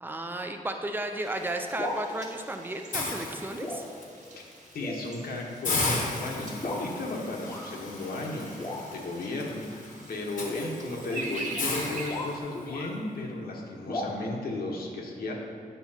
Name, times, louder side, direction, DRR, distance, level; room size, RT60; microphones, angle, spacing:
voice 1, 0.0-3.8, right 1 dB, 15° right, 5 dB, 0.5 m, -34 dB
sound 1, 1.2-12.4, right 2 dB, 50° right, 1.3 m, -45 dB
sound 2, 1.6-2.1 3.0-3.3 3.6-3.9 4.3-4.4 4.8-5.0 5.7-5.9 6.6-6.9 7.4-7.7 8.6-9.1 10.4-13.0 13.9-14.1, left 1 dB, 30° left, 0.8 m, -37 dB
Hiss, 2.9-4.0 4.5-4.7 5.1-5.2 5.6-12.7, left 3 dB, 65° left, 1.0 m, -35 dB
voice 2, 4.7-5.8 6.1-15.3, left 2 dB, 85° left, -1 dB, 1.1 m, -35 dB
9.2 x 5.8 x 2.8 m, 2.4 s
wide cardioid pair, 155°, 15 cm